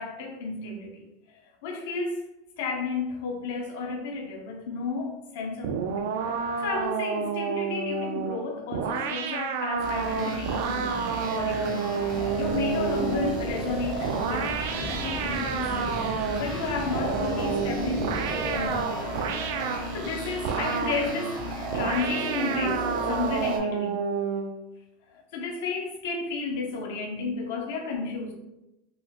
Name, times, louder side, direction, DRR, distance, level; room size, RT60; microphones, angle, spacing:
voice 1, 0.0-2.3 2.6-6.1 6.6-14.6 14.9-19.4 19.6-21.4 21.7-24.1 25.1-28.3, left 4 dB, 70° left, 2 dB, 0.5 m, -33 dB
sound 1, 5.6-13.5 14.0-16.6 16.9-19.9 20.4-21.1 21.7-24.6, right 6 dB, 75° right, 0.3 m, -30 dB
sound 2, 9.8-23.6, right 1 dB, 50° right, 0.7 m, -33 dB
sound 3, 12.1-18.8, left 1 dB, 15° left, 0.3 m, -39 dB
3.8 x 2.1 x 2.8 m, 0.91 s
supercardioid pair, 155°, 0 cm